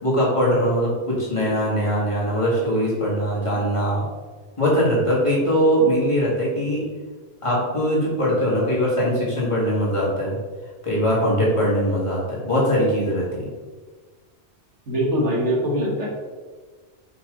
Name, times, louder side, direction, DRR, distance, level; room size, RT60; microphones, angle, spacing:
voice 1, 0.0-4.0 4.6-6.8 7.4-10.4 10.8-13.5, equal, 25° left, -6 dB, 2.0 m, -21 dB
voice 2, 14.9-16.1, equal, 75° right, -3 dB, 1.8 m, -22 dB
5.8 x 5.2 x 3.9 m, 1.4 s
omnidirectional pair, 1.2 m